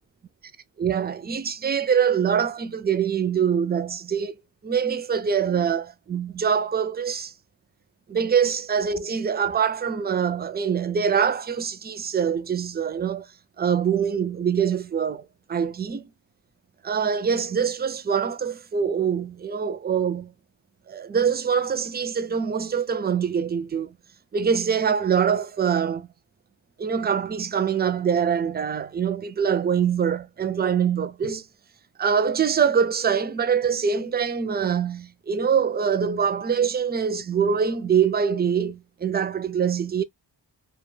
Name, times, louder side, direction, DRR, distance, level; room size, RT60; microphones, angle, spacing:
voice 1, 0.8-4.3 4.6-7.3 8.1-13.3 13.6-16.1 16.8-20.3 20.9-23.9 24.3-26.1 26.8-31.5 32.0-40.0, right 7 dB, 25° right, 0.3 m, -24 dB
2.2 x 2.2 x 3.1 m
wide cardioid pair, 65°, 42 cm